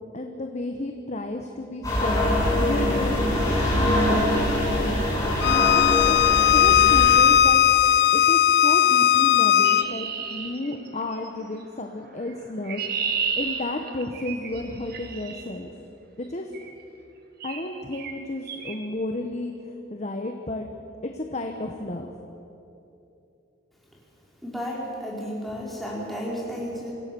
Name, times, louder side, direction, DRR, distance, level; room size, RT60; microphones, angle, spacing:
voice 1, 0.1-3.4 3.6-4.5 5.4-6.2 6.5-7.6 8.1-12.8 13.3-15.7 16.2-16.5 17.4-19.5 19.9-20.7 21.0-22.1, left 1 dB, 40° left, 4 dB, 1.2 m, -32 dB
sound 1, 1.8-7.2, left 1 dB, 20° left, 6.7 m, -23 dB
Bowed string instrument, 5.4-9.9, left 10 dB, 60° left, 0.6 m, -18 dB
Chirp tweet, 9.6-11.3 12.3-15.4 16.5-16.8 17.4-17.7 17.9-18.1 18.5-18.8, right 6 dB, 55° right, 1.9 m, -32 dB
voice 2, 24.4-26.9, equal, ahead, -4 dB, 4.6 m, -32 dB
25.5 x 16.5 x 7.0 m, 2.8 s
head